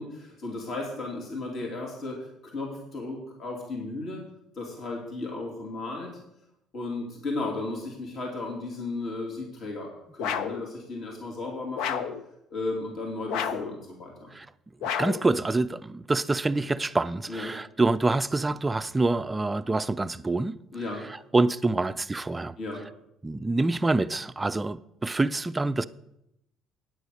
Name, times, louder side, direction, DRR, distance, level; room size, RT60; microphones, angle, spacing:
voice 1, 0.0-4.2 4.5-6.1 6.7-12.0 12.5-14.3 17.3-17.5 20.7-21.0 22.6-22.8, left 2 dB, 50° left, 2.8 m, -35 dB
sound 1, 10.2-10.7 11.8-12.2 13.3-13.8 14.8-15.3, left 8 dB, 85° left, 0.7 m, -30 dB
voice 2, 14.8-20.6 21.3-22.5 23.2-25.8, right 2 dB, 15° right, 0.4 m, -26 dB
9.2 x 8.1 x 6.5 m
cardioid pair, 125°, 0 cm